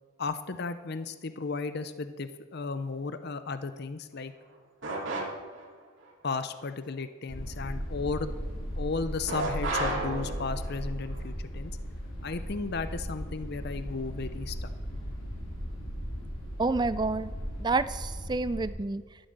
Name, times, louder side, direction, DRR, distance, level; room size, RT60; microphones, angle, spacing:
voice 1, 0.2-4.3 6.2-8.3 8.8-11.7 12.2-14.7, left 4 dB, 50° left, 11 dB, 0.6 m, -34 dB
sound 1, 4.8-5.7 9.3-10.8, right 2 dB, 60° right, 3.0 m, -32 dB
sound 2, 7.3-18.7, equal, 75° left, 3.4 m, -37 dB
voice 2, 16.6-17.3 17.6-19.0, right 3 dB, 20° right, 15 dB, 0.3 m, -28 dB
13.0 x 8.2 x 6.7 m, 1.5 s
head